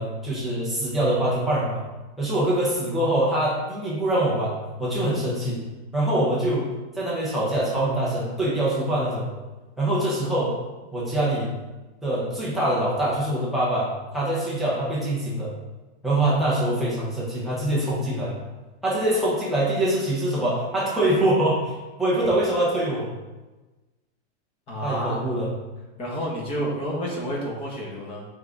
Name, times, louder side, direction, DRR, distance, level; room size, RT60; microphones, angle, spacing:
voice 1, 0.0-1.8 2.2-5.7 5.9-6.7 6.9-9.3 9.8-10.6 10.9-11.5 12.0-15.5 16.0-18.4 18.8-23.1 24.8-25.5, right 1 dB, ahead, -8 dB, 0.3 m, -24 dB
voice 2, 24.7-25.2 26.0-28.3, equal, 15° left, -3 dB, 1.1 m, -30 dB
8.2 x 3.5 x 3.7 m, 1.2 s
supercardioid pair, 175°, 33 cm